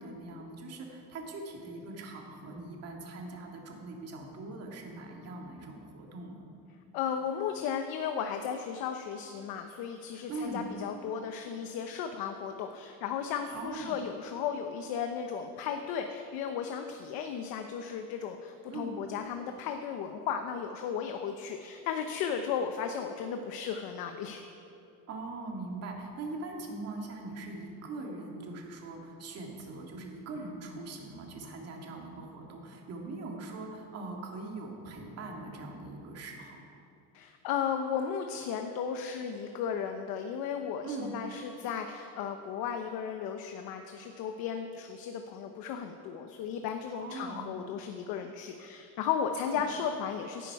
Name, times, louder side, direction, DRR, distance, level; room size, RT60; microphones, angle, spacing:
voice 1, 0.0-6.5 10.3-10.7 13.5-13.9 18.7-19.0 25.1-36.6 40.8-41.1 47.0-47.5 49.4-49.6, right 3 dB, 45° right, 0 dB, 2.2 m, -41 dB
voice 2, 6.9-24.4 37.1-50.5, left 7 dB, 85° left, 5 dB, 0.9 m, -35 dB
16.5 x 11.5 x 4.8 m, 2.7 s
cardioid pair, 175°, 35 cm